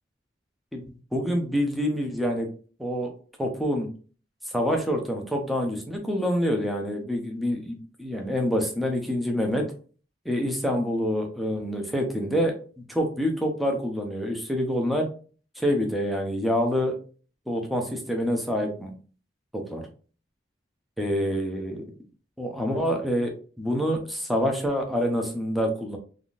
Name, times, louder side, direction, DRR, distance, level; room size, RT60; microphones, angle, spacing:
voice 1, 1.1-2.5 2.8-3.1 3.4-3.9 4.5-9.7 10.3-12.5 12.9-15.1 15.6-17.0 17.5-18.9 19.5-19.8 21.0-21.8 22.4-26.0, equal, ahead, 2 dB, 0.6 m, -26 dB
3.5 x 2.3 x 2.5 m, 0.40 s
head